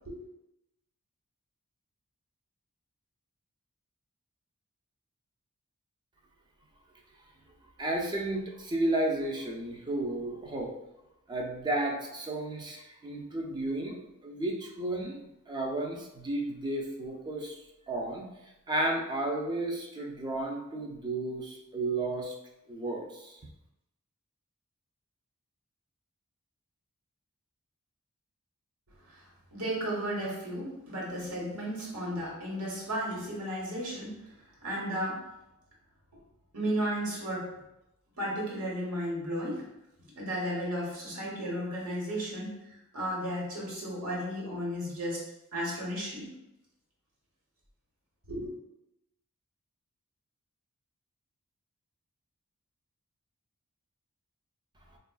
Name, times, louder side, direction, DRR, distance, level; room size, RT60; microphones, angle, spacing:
voice 1, 7.8-10.7 11.3-15.2 15.5-17.6 17.9-18.3 18.7-22.3 22.7-23.4, right 2 dB, 20° right, 1 dB, 0.4 m, -33 dB
voice 2, 29.5-34.2 34.6-35.2 36.5-37.5 38.2-39.6 40.2-42.5 42.9-45.2 45.5-46.3 48.3-48.5, equal, 70° right, -4 dB, 1.2 m, -34 dB
4.5 x 2.4 x 2.3 m, 0.89 s
head